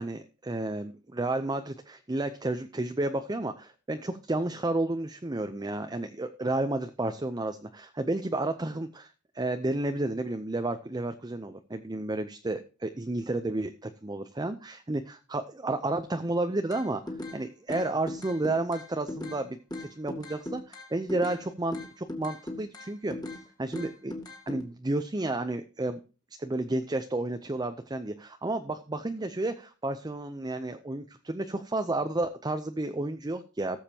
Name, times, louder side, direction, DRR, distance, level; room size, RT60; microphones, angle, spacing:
voice 1, 0.0-9.1 9.3-23.2 23.6-24.1 24.5-26.0 26.4-33.8, right 2 dB, 20° right, 8 dB, 0.6 m, -31 dB
sound 1, 16.7-17.4 17.7-19.4 19.7-21.4 21.7-23.4 23.7-24.6, left 1 dB, 20° left, 2.1 m, -38 dB
18.0 x 7.2 x 2.9 m, 0.33 s
head